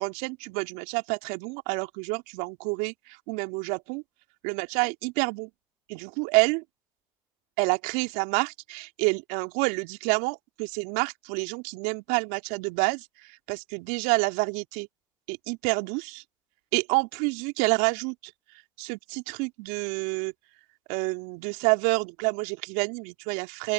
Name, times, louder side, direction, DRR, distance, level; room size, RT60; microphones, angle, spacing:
voice 1, 0.0-4.0 4.4-5.5 5.9-6.6 7.6-14.9 15.3-16.2 16.7-18.3 18.8-20.3 20.9-23.7, right 29 dB, 70° right, 2.9 m, -28 dB
open air
hypercardioid pair, 60°, 16 cm